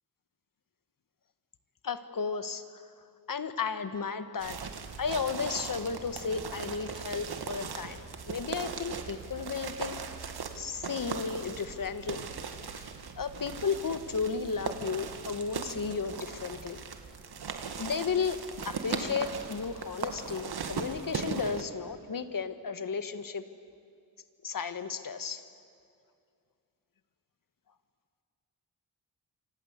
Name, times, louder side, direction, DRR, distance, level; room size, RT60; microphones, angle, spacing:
voice 1, 1.8-2.8 3.3-4.6 5.0-10.0 10.5-12.3 12.6-16.8 17.8-23.4 24.4-25.4, left 5 dB, 60° left, 10 dB, 1.6 m, -34 dB
sound 1, 4.4-21.6, right 6 dB, 80° right, 2.1 m, -39 dB
27.5 x 26.0 x 8.3 m, 2.4 s
wide cardioid pair, 90°, 38 cm